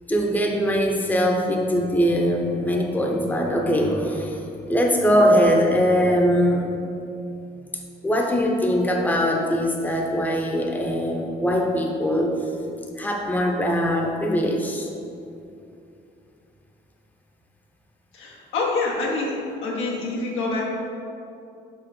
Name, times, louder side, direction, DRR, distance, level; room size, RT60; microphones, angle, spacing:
voice 1, 0.1-6.7 8.0-12.3 13.0-14.9, equal, 10° left, 1 dB, 0.8 m, -21 dB
voice 2, 18.1-19.3 19.6-20.6, left 3 dB, 90° left, -3 dB, 1.3 m, -26 dB
5.4 x 5.4 x 4.4 m, 2.7 s
cardioid pair, 90°, 20 cm